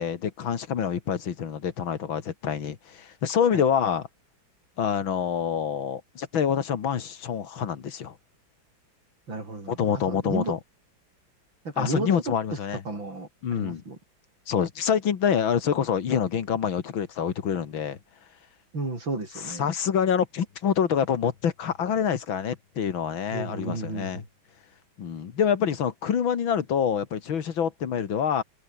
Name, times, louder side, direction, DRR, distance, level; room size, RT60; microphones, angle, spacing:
voice 1, 0.0-4.1 4.8-8.2 9.7-10.6 11.8-12.8 13.4-13.8 14.5-18.0 19.5-24.2 25.0-28.4, left 8 dB, 80° left, 2.5 m, -26 dB
voice 2, 9.3-10.5 11.7-12.1 12.9-14.0 18.7-19.7 23.3-24.3, right 3 dB, 75° right, 7.0 m, -33 dB
open air
omnidirectional pair, 2.1 m